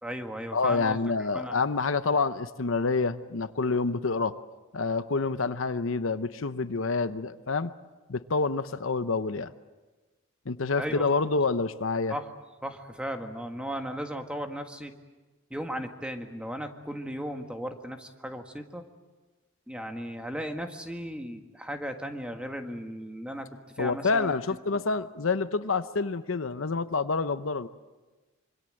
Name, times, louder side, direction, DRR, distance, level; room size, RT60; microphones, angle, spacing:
voice 1, 0.0-1.6 10.8-11.0 12.1-12.3 12.6-14.9 15.5-18.8 19.7-23.5 23.8-24.3, equal, 5° right, 5 dB, 1.7 m, -36 dB
voice 2, 0.5-4.3 4.7-7.7 8.1-9.5 10.5-12.1 23.8-27.7, left 4 dB, 65° left, 12 dB, 0.8 m, -27 dB
26.0 x 25.0 x 7.8 m, 1.2 s
head